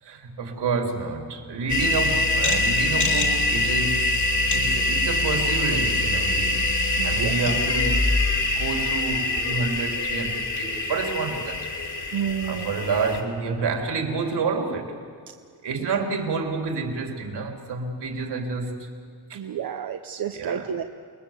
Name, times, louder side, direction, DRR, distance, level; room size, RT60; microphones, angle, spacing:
voice 1, 0.0-4.3 4.5-6.7 7.0-11.9 12.4-15.0 15.6-18.9 19.3-19.4 20.3-20.7, right 4 dB, 70° right, 2 dB, 3.7 m, -29 dB
sound 1, 1.7-13.2, left 2 dB, 45° left, 2.7 m, -24 dB
voice 2, 7.0-7.4 12.1-12.7 19.3-20.8, right 8 dB, 55° right, 6 dB, 0.9 m, -30 dB
28.5 x 21.0 x 7.4 m, 2.1 s
wide cardioid pair, 155°, 42 cm